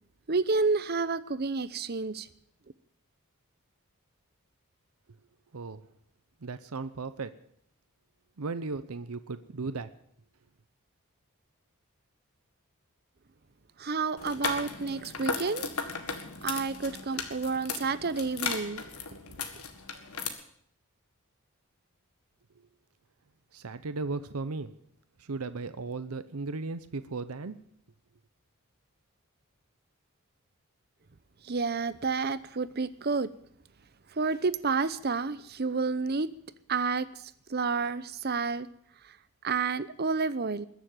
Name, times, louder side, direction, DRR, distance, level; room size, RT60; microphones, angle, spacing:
voice 1, 0.3-2.3 13.8-15.7 16.4-18.8 31.4-33.3 34.1-36.3 36.7-38.7 39.0-39.2 39.4-40.7, right 4 dB, 45° right, 0.7 m, -30 dB
voice 2, 6.4-7.3 8.4-9.9 23.5-24.7 25.2-27.6, right 3 dB, 85° right, 0.8 m, -36 dB
sound 1, 14.2-20.3, left 5 dB, 90° left, 1.9 m, -36 dB
21.0 x 7.1 x 9.0 m
head